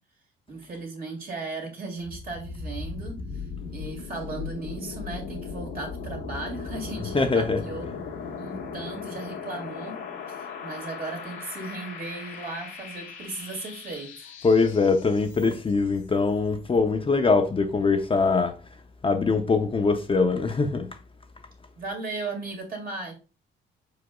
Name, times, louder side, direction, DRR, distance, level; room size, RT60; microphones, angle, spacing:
voice 1, 0.5-3.5 3.7-7.9 8.4-9.9 10.3-10.4 10.6-14.3 21.8-23.1, right 3 dB, 50° right, 2.2 m, -36 dB
sound 1, 2.0-15.8, left 5 dB, 90° left, 1.3 m, -38 dB
voice 2, 7.1-7.6 14.4-18.6 19.0-20.9, left 4 dB, 25° left, 0.6 m, -22 dB
4.9 x 4.8 x 2.3 m
cardioid pair, 90°, 20 cm